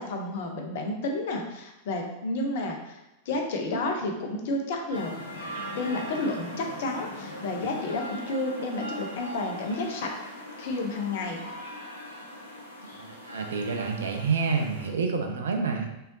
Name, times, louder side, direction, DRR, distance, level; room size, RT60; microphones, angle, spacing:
voice 1, 0.0-3.0 3.2-5.2 5.7-10.2 10.6-11.5, left 2 dB, 55° left, 2 dB, 0.9 m, -31 dB
sound 1, 4.9-14.9, equal, 80° left, 0.9 m, -40 dB
voice 2, 13.0-15.9, right 5 dB, 65° right, 4 dB, 0.6 m, -28 dB
5.6 x 3.5 x 2.7 m, 0.95 s
figure-of-eight pair, 90°, 0 cm